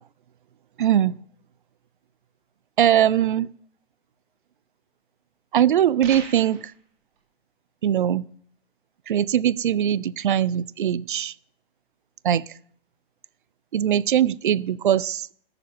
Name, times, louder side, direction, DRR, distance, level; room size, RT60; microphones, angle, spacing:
voice 1, 0.8-1.1 2.8-3.5 5.5-6.7 7.8-8.2 9.1-11.3 12.2-12.4 13.7-15.3, right 10 dB, 55° right, 22 dB, 0.5 m, -21 dB
sound 1, 6.0-6.7, right 6 dB, 40° right, 2.5 m, -38 dB
13.5 x 6.8 x 7.0 m, 0.64 s
figure-of-eight pair, 110°, 30 cm